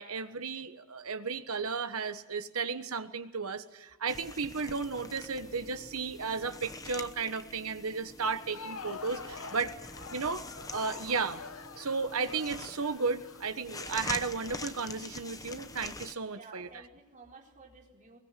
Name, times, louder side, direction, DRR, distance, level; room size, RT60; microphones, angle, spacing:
voice 1, 0.0-9.7 10.1-11.4 11.8-16.7, right 4 dB, 75° right, 9 dB, 1.4 m, -34 dB
sound 1, 4.1-16.1, left 3 dB, 15° left, 1.0 m, -45 dB
Crowd, 8.3-14.2, left 4 dB, 65° left, 1.1 m, -46 dB
voice 2, 9.2-9.6 16.3-18.2, right 4 dB, 35° right, -1 dB, 4.6 m, -53 dB
22.0 x 21.5 x 7.7 m, 1.1 s
head